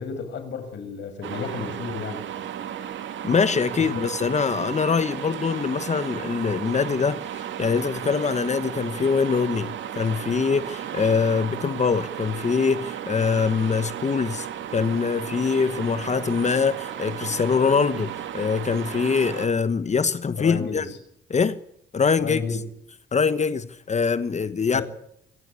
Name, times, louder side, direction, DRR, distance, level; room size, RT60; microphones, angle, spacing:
voice 1, 0.0-2.2 3.9-4.0 20.4-21.0 22.2-22.6 24.7-24.8, left 5 dB, 65° left, 6.1 m, -32 dB
sound 1, 1.2-19.5, right 10 dB, 75° right, 2.5 m, -34 dB
voice 2, 3.2-14.5 14.7-20.8 21.3-21.6 21.9-22.4 23.1-24.8, left 5 dB, 35° left, 1.2 m, -23 dB
27.0 x 16.5 x 8.5 m
cardioid pair, 90°, 20 cm